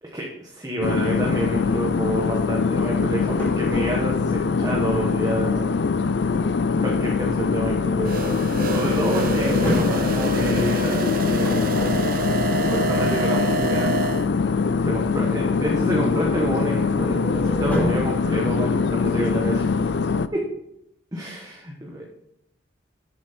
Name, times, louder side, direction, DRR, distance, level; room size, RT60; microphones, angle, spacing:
voice 1, 0.0-5.7 6.8-11.5 12.6-14.0 14.8-19.8 20.3-20.4 21.1-22.1, right 1 dB, 20° right, -2 dB, 1.2 m, -28 dB
sound 1, 0.8-20.3, left 4 dB, 60° left, 0.4 m, -23 dB
sound 2, 3.1-4.4 8.9-12.4 16.9-18.1, equal, 10° left, 2.7 m, -30 dB
sound 3, 8.0-14.3, right 5 dB, 45° right, 0.5 m, -28 dB
9.0 x 7.3 x 4.3 m, 0.79 s
head